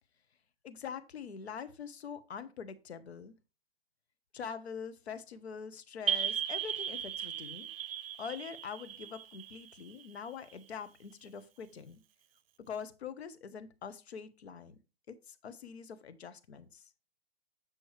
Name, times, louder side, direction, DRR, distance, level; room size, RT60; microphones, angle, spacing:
voice 1, 0.6-3.3 4.3-7.7 8.2-12.0 12.7-14.8 15.1-16.9, left 6 dB, 85° left, 12 dB, 1.1 m, -44 dB
sound 1, 6.1-10.5, right 8 dB, 65° right, 0.7 m, -36 dB
8.1 x 6.2 x 3.2 m, 0.31 s
hypercardioid pair, 140°, 32 cm